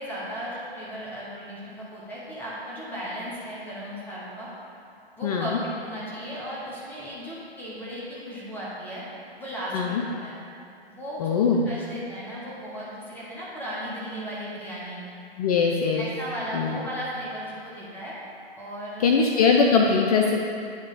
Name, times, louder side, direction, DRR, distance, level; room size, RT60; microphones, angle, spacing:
voice 1, 0.0-4.5 5.2-9.0 9.4-10.3 10.9-15.0 16.0-18.1 18.6-19.1, equal, 5° left, -8 dB, 1.2 m, -36 dB
voice 2, 5.2-5.6 9.7-10.0 11.2-11.7 15.4-16.1 16.5-16.8 19.0-20.4, left 5 dB, 35° left, 1 dB, 0.5 m, -21 dB
8.8 x 3.3 x 5.3 m, 2.5 s
hypercardioid pair, 140°, 32 cm